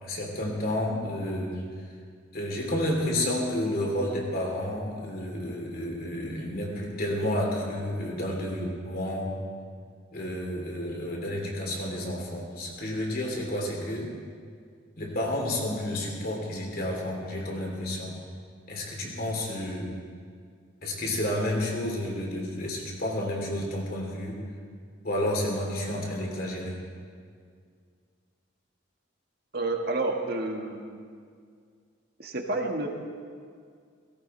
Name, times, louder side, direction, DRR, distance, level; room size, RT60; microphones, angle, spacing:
voice 1, 0.0-1.6 2.3-9.4 10.1-14.1 15.0-18.2 18.7-19.9 20.8-24.4 25.0-26.8, left 1 dB, 45° left, -1 dB, 3.2 m, -30 dB
voice 2, 29.5-30.9 32.2-32.9, right 2 dB, 50° right, 2 dB, 1.7 m, -29 dB
17.5 x 17.0 x 4.4 m, 2.1 s
head